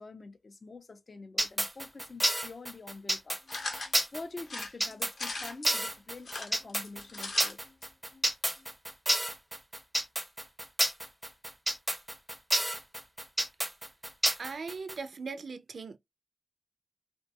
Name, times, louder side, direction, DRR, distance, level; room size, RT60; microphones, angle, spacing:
voice 1, 0.0-3.4 4.1-7.6, left 3 dB, 45° left, 0.5 m, -46 dB
sound 1, 1.4-14.9, right 1 dB, 10° right, 0.5 m, -30 dB
sound 2, 3.5-3.9 4.5-5.7 6.2-7.5 7.8-7.9 8.1-8.2, left 3 dB, 75° left, 0.9 m, -39 dB
voice 2, 14.4-16.0, right 4 dB, 75° right, 0.3 m, -39 dB
2.5 x 2.2 x 2.5 m
wide cardioid pair, 125°, 0 cm